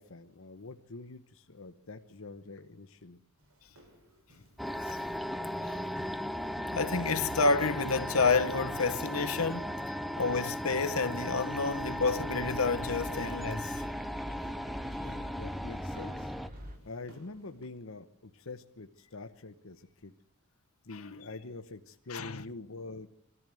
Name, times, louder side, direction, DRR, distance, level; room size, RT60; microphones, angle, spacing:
voice 1, 0.0-3.2 15.0-16.3 16.8-20.1 20.8-23.1, left 3 dB, 70° left, 1.0 m, -45 dB
sound 1, 3.4-17.7, equal, 85° right, 6.1 m, -58 dB
sound 2, 4.6-16.5, equal, ahead, 0.7 m, -37 dB
voice 2, 6.7-9.8 10.2-13.8 20.9-21.2 22.1-22.4, left 4 dB, 85° left, 1.3 m, -29 dB
sound 3, 11.6-16.8, equal, 45° right, 3.3 m, -46 dB
24.0 x 14.0 x 7.7 m
head